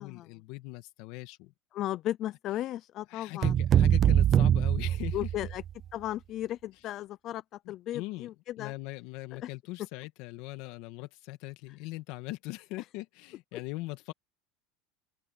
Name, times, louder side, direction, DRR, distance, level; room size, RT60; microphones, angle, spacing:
voice 1, 0.0-1.5 3.1-5.3 7.7-8.3 8.6-14.1, left 20 dB, 60° left, 2.1 m, -40 dB
voice 2, 1.7-3.5 5.1-5.6 5.9-7.4 7.7-8.7 9.3-9.5 11.7-11.8, left 13 dB, 40° left, 0.4 m, -35 dB
sound 1, 3.4-5.7, right 10 dB, 30° right, 0.5 m, -23 dB
open air
cardioid pair, 160°, 0 cm